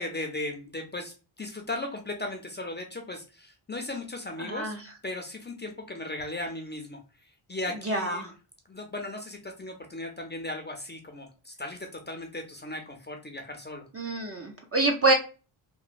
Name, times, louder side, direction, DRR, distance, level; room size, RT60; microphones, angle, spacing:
voice 1, 0.0-4.7 5.0-7.0 7.5-8.3 8.7-13.9, left 2 dB, 20° left, 3 dB, 0.5 m, -37 dB
voice 2, 4.4-4.8 7.8-8.3 13.9-15.1, right 2 dB, 30° right, 2 dB, 0.5 m, -26 dB
3.0 x 2.1 x 2.4 m, 0.33 s
wide cardioid pair, 115°, 49 cm